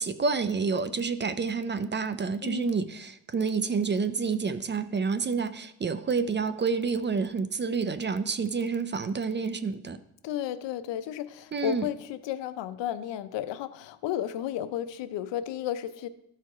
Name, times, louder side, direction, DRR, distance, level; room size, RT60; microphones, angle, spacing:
voice 1, 0.0-10.0 11.5-11.9, right 5 dB, 25° right, 12 dB, 0.4 m, -29 dB
voice 2, 2.4-2.8 10.2-16.1, left 11 dB, 85° left, 13 dB, 0.6 m, -33 dB
13.5 x 4.6 x 3.5 m, 0.78 s
cardioid pair, 100°, 42 cm